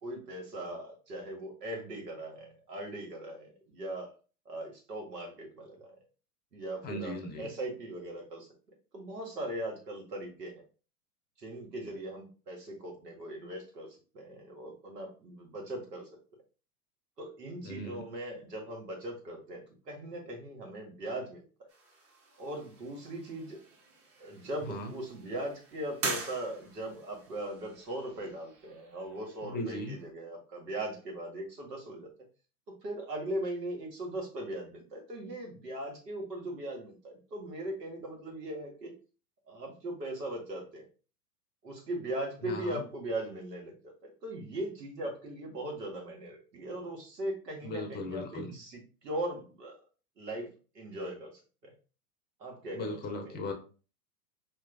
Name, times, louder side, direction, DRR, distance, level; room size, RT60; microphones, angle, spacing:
voice 1, 0.0-4.1 4.5-5.9 6.5-8.5 8.9-10.5 11.4-16.1 17.2-21.7 22.4-23.6 24.2-32.1 32.7-38.9 39.5-40.9 41.6-49.8 50.2-50.5 50.7-51.3 51.6-51.7 52.4-53.0 53.3-53.5, right 1 dB, 85° right, 0 dB, 1.9 m, -39 dB
voice 2, 6.8-7.5 17.6-18.0 24.6-24.9 29.4-30.0 42.4-42.8 47.6-48.6 52.7-53.5, left 1 dB, 20° left, 5 dB, 0.6 m, -38 dB
sound 1, 21.7-30.1, right 3 dB, 30° right, 1.2 m, -44 dB
4.4 x 3.0 x 2.6 m, 0.36 s
hypercardioid pair, 115°, 47 cm